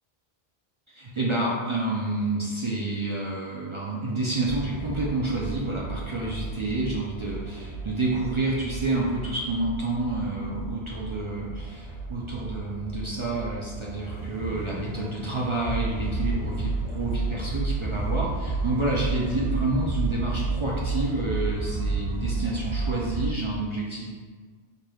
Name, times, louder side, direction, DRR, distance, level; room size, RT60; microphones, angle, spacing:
voice 1, 0.9-24.2, right 2 dB, 50° right, -5 dB, 0.4 m, -29 dB
sound 1, 4.5-23.3, right 3 dB, 85° right, 1.5 m, -32 dB
4.6 x 3.2 x 2.3 m, 1.5 s
omnidirectional pair, 1.1 m